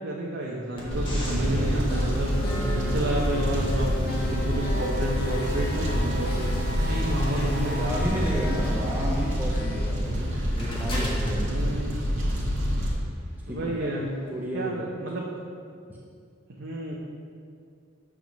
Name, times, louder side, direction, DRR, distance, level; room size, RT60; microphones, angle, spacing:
voice 1, 0.0-2.4 2.7-6.4 6.8-8.2 11.4-12.0 13.5-14.2 14.5-15.3 16.5-17.0, right 1 dB, 60° right, -4 dB, 0.8 m, -30 dB
sound 1, 0.7-12.7, left 1 dB, 25° left, 1.4 m, -37 dB
Fire, 0.9-12.9, equal, 80° right, 1.6 m, -27 dB
sound 2, 1.3-10.1, left 1 dB, 50° left, 0.9 m, -37 dB
voice 2, 7.6-11.6 13.5-13.9 14.2-14.9 15.9-16.0, equal, 10° right, -4 dB, 0.7 m, -33 dB
7.3 x 3.7 x 6.0 m, 2.3 s
head